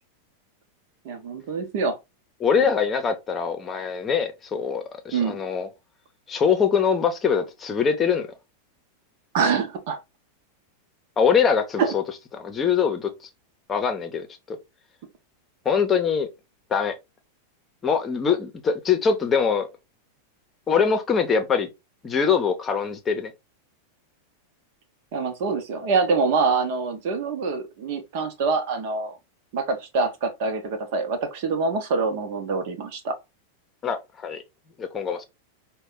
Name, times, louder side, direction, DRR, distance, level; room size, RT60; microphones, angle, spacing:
voice 1, 1.0-2.0 2.6-2.7 5.1-5.4 9.3-10.0 11.8-11.9 25.1-29.2 29.5-33.2, right 4 dB, 50° right, 0.9 m, -25 dB
voice 2, 2.4-5.7 6.3-8.3 11.2-12.0 12.3-13.1 13.7-14.6 15.6-16.3 16.7-16.9 17.8-19.7 20.7-21.7 22.0-23.3 33.8-34.4 34.8-35.2, left 6 dB, 20° left, 0.9 m, -23 dB
5.2 x 2.3 x 3.9 m
figure-of-eight pair, 90°, 0 cm